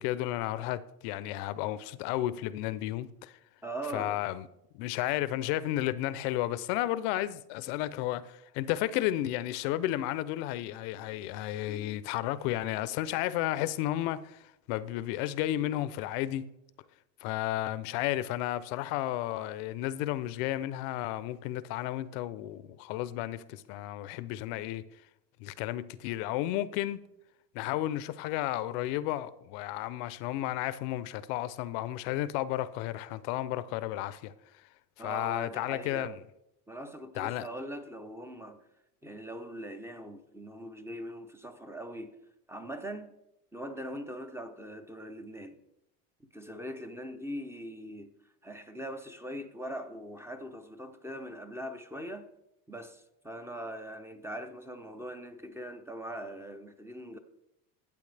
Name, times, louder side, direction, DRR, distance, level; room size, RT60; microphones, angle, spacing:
voice 1, 0.0-3.4 3.9-4.5 4.7-14.4 14.7-16.5 17.2-24.8 25.4-27.0 27.5-34.3 35.0-36.2 37.2-37.5, left 14 dB, 80° left, 0.7 m, -33 dB
voice 2, 3.6-4.2 35.0-36.2 36.7-38.6 39.0-42.2 42.5-43.1 43.5-45.6 46.3-48.1 48.4-52.3 52.7-57.2, equal, 5° right, 0.6 m, -41 dB
12.0 x 8.6 x 3.3 m
cardioid pair, 125°, 47 cm